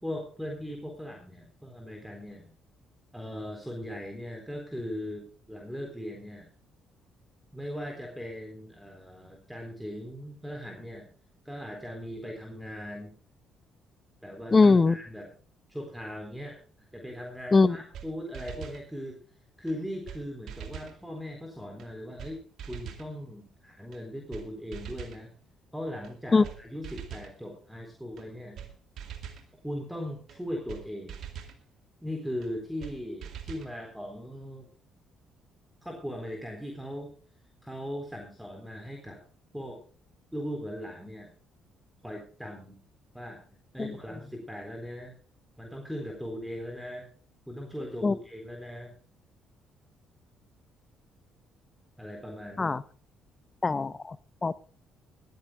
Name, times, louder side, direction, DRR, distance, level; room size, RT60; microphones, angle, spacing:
voice 1, 0.0-2.5 3.1-6.5 7.5-11.1 11.4-13.2 14.2-15.3 15.7-16.6 16.9-19.2 19.6-22.4 22.7-25.3 25.7-28.7 29.6-31.2 32.0-34.7 35.8-37.1 37.6-39.2 39.5-39.8 40.3-41.3 42.0-42.8 43.1-43.4 43.7-45.1 45.6-47.1 47.5-49.0 52.0-52.8, equal, 5° right, 3 dB, 3.9 m, -39 dB
voice 2, 14.5-15.0 17.5-17.8 26.3-26.5 43.8-43.9 48.0-48.1 52.6-52.8 53.6-54.2 54.4-54.6, left 4 dB, 30° left, 17 dB, 0.8 m, -21 dB
sound 1, 17.5-17.6 17.9-18.1 18.3-18.8 19.7-19.8 20.1-20.2 20.5-21.0 21.8-21.9 22.2-22.3 22.6-23.1 23.9-24.0 24.3-24.5 24.7-25.2 26.0-26.1 26.4-26.6 26.8-27.3 28.2-28.3 28.6-28.7 29.0-29.5 30.3-30.4 30.7-30.8 31.1-31.6 32.4-32.5 32.8-32.9 33.2-33.7, right 9 dB, 60° right, 2.4 m, -42 dB
21.5 x 14.5 x 2.3 m, 0.42 s
hypercardioid pair, 50°, 0 cm